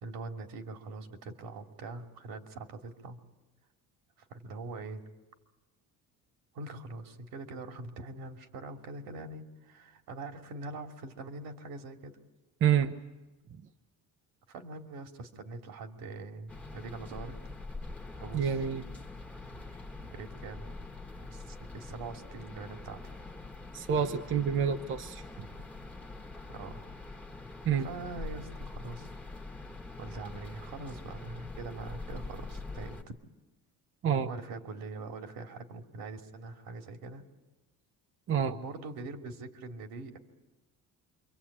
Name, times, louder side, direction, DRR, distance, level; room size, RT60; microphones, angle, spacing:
voice 1, 0.0-3.2 4.3-5.0 6.5-12.1 14.5-17.4 18.2-18.5 20.1-20.8 21.3-23.0 26.5-26.8 27.8-29.1 30.0-33.2 34.2-37.2 38.4-40.2, right 3 dB, 80° right, 4 dB, 3.0 m, -43 dB
voice 2, 12.6-12.9 18.3-18.8 23.7-25.5 27.6-27.9 34.0-34.3 38.3-38.5, right 8 dB, 35° right, 7 dB, 0.9 m, -28 dB
sound 1, 16.5-33.0, left 3 dB, 5° left, 1.5 m, -44 dB
27.5 x 25.0 x 8.7 m, 1.1 s
cardioid pair, 170°, 35 cm